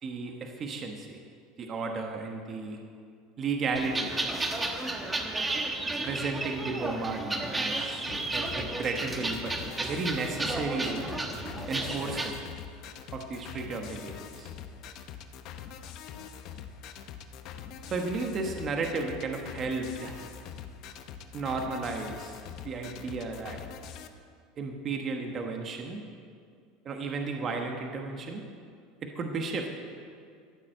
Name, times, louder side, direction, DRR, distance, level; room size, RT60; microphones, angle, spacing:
voice 1, 0.0-1.2 1.6-2.8 3.4-4.2 6.0-8.0 8.3-11.0 11.7-12.3 13.1-14.5 17.9-20.2 21.3-22.4 22.6-23.6 24.6-26.0 26.8-28.4 29.0-29.7, right 4 dB, 30° right, 3 dB, 1.1 m, -33 dB
sound 1, 3.8-12.3, right 2 dB, 10° right, 1.1 m, -33 dB
sound 2, 8.1-24.1, left 8 dB, 50° left, 0.8 m, -44 dB
13.5 x 7.3 x 7.8 m, 2.2 s
supercardioid pair, 150°, 0 cm